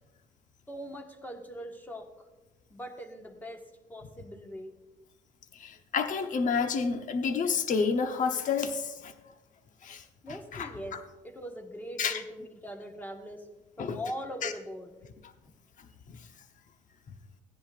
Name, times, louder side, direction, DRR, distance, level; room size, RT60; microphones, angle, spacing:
voice 1, 0.7-2.3 2.7-3.6 3.9-4.7 10.2-10.9 11.2-13.5 13.8-15.0, equal, 10° left, 2 dB, 1.5 m, -41 dB
voice 2, 5.6-9.1 9.8-10.0 10.5-10.7 12.0-12.2 13.8-14.0 14.4-14.5, left 5 dB, 50° left, 7 dB, 1.0 m, -29 dB
16.5 x 10.0 x 2.5 m, 1.1 s
cardioid pair, 110°, 17 cm